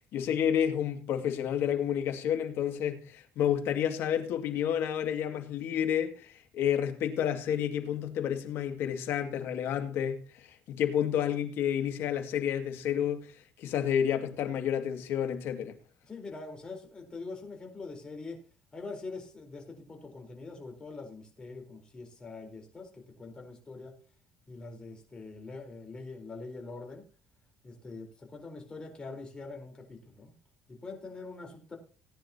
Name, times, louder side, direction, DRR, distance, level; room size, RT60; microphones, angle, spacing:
voice 1, 0.1-13.3 13.6-15.8, left 9 dB, 65° left, 2.3 m, -30 dB
voice 2, 16.0-18.4 18.7-24.0 24.5-27.0 27.6-30.3 30.7-31.8, left 3 dB, 20° left, 4.3 m, -44 dB
18.5 x 10.0 x 2.9 m
cardioid pair, 135°, 4 cm